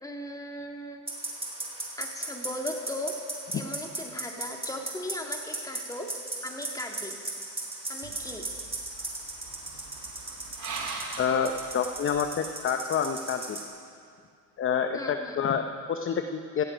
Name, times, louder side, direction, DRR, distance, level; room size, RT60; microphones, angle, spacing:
voice 1, 0.0-1.1 2.0-3.2 3.5-6.1 6.4-7.2 7.9-8.5 14.9-15.5, left 1 dB, 5° left, 2 dB, 1.9 m, -37 dB
sound 1, 1.1-13.6, right 2 dB, 10° right, 3.6 m, -37 dB
sound 2, 8.0-12.4, right 4 dB, 35° right, 3.2 m, -41 dB
voice 2, 11.2-13.6 14.6-16.6, left 7 dB, 25° left, 7 dB, 0.7 m, -28 dB
17.0 x 15.0 x 5.2 m, 2.3 s
supercardioid pair, 100°, 49 cm